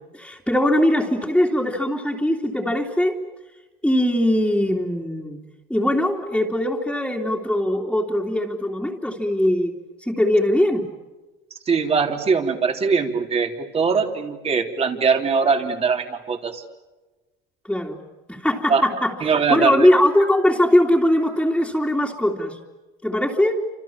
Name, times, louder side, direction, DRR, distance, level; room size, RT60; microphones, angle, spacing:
voice 1, 0.1-3.2 3.8-5.4 5.7-9.7 10.0-10.9 17.7-18.0 18.3-19.2 19.5-22.6 23.0-23.6, left 1 dB, 5° left, -3 dB, 3.1 m, -20 dB
voice 2, 11.7-16.6 18.7-18.8 19.2-19.9, right 5 dB, 35° right, 5 dB, 3.5 m, -21 dB
29.5 x 27.0 x 7.4 m, 1.2 s
cardioid pair, 120°, 19 cm